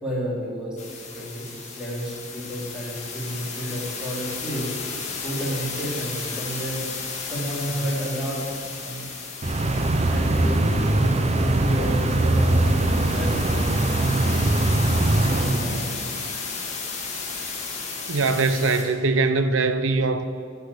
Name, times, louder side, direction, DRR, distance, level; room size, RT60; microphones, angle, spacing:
voice 1, 0.0-6.8 7.2-8.5 8.8-9.0 10.0-13.7 13.9-14.1 14.8-15.9, equal, 5° right, -6 dB, 3.0 m, -31 dB
sound 1, 0.8-18.8, left 4 dB, 35° left, 1.9 m, -34 dB
sound 2, 9.4-16.2, right 2 dB, 35° right, 0.7 m, -21 dB
voice 2, 18.1-20.2, right 3 dB, 85° right, 10 dB, 0.8 m, -22 dB
12.0 x 5.9 x 8.4 m, 2.2 s
head